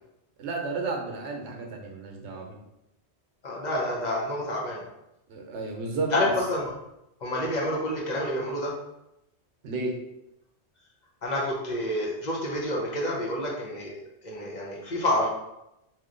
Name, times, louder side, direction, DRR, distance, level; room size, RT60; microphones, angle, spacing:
voice 1, 0.4-2.6 5.3-6.3 9.6-9.9, right 3 dB, 85° right, 1 dB, 1.0 m, -32 dB
voice 2, 3.4-4.8 6.1-6.7 7.2-8.7 11.2-15.3, left 1 dB, 45° left, -4 dB, 0.7 m, -28 dB
2.9 x 2.2 x 3.6 m, 0.87 s
omnidirectional pair, 1.1 m